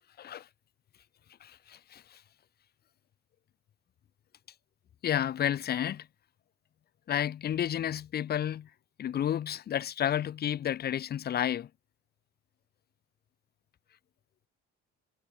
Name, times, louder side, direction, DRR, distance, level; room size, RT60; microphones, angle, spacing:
voice 1, 1.4-2.2 5.0-6.1 7.1-8.7 9.0-11.7, left 10 dB, 30° left, 0.5 m, -31 dB
hypercardioid pair, 60°, 32 cm